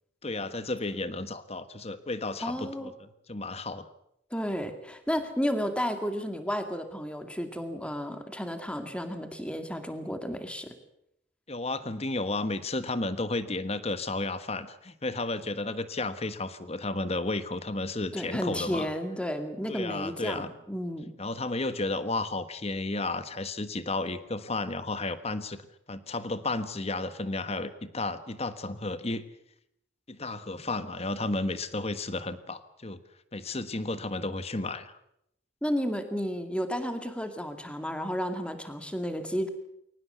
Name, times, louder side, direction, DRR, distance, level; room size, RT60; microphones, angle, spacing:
voice 1, 0.2-3.9 11.5-18.9 19.7-20.5 21.2-25.6 25.9-29.2 30.1-33.0 33.3-34.9, left 2 dB, 35° left, 12 dB, 1.4 m, -33 dB
voice 2, 2.4-2.9 4.3-10.7 18.1-21.1 35.6-39.5, equal, 5° left, 7 dB, 2.2 m, -32 dB
23.0 x 19.0 x 8.1 m, 0.78 s
head